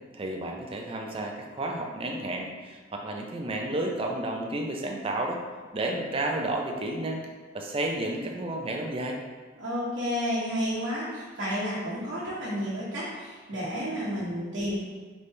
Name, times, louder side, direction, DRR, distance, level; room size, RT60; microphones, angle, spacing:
voice 1, 0.1-5.4 5.7-7.2 7.5-9.2, right 1 dB, 30° right, 1 dB, 0.4 m, -31 dB
voice 2, 9.6-14.8, equal, 75° right, -11 dB, 1.0 m, -31 dB
4.0 x 3.4 x 3.2 m, 1.4 s
head